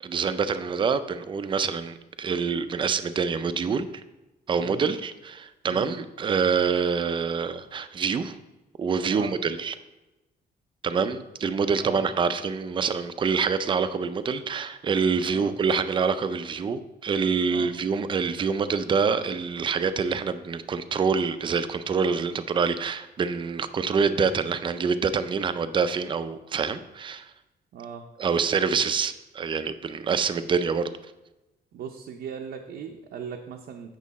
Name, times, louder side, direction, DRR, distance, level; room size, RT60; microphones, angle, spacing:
voice 1, 0.0-3.9 4.5-8.4 8.8-9.7 10.8-27.3 28.2-30.9, right 5 dB, 30° right, 11 dB, 0.4 m, -26 dB
voice 2, 27.7-28.1 31.7-34.0, right 7 dB, 75° right, 3 dB, 0.6 m, -38 dB
8.4 x 6.3 x 4.1 m, 1.0 s
wide cardioid pair, 165°, 17 cm